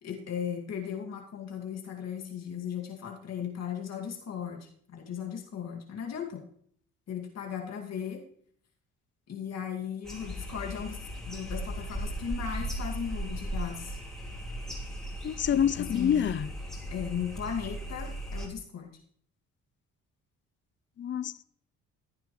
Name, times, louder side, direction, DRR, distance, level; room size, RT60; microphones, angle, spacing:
voice 1, 0.0-6.4 7.1-8.2 9.3-11.0 11.3-14.0 15.5-16.3 16.9-19.0, left 8 dB, 60° left, 2.2 m, -37 dB
sound 1, 10.0-18.5, equal, ahead, 3.1 m, -37 dB
voice 2, 15.2-16.5 21.0-21.4, left 9 dB, 40° left, 0.5 m, -27 dB
14.5 x 9.1 x 3.2 m
cardioid pair, 90°, 30 cm